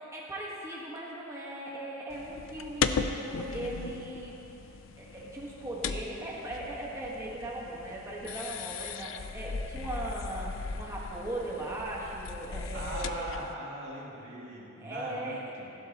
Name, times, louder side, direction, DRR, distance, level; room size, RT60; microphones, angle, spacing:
voice 1, 0.0-4.3 5.0-13.3 14.8-15.4, right 1 dB, 15° right, -5 dB, 1.4 m, -38 dB
sound 1, 2.1-13.5, left 5 dB, 80° left, 0.5 m, -37 dB
voice 2, 12.7-15.7, right 1 dB, 65° right, -5 dB, 2.4 m, -40 dB
15.0 x 12.0 x 2.9 m, 2.8 s
head